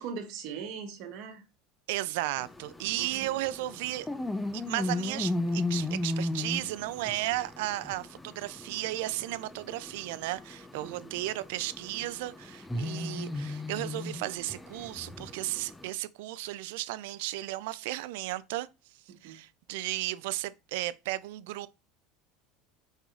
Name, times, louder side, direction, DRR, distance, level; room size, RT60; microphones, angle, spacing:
voice 1, 0.0-1.4 3.0-3.3 10.8-11.1 19.1-19.4, right 6 dB, 60° right, 1.2 m, -40 dB
voice 2, 1.9-4.1 4.5-18.7 19.2-21.7, right 16 dB, 80° right, 0.3 m, -34 dB
sound 1, 2.4-15.9, left 2 dB, 10° left, 0.4 m, -36 dB
5.4 x 2.8 x 2.4 m
supercardioid pair, 125°, 0 cm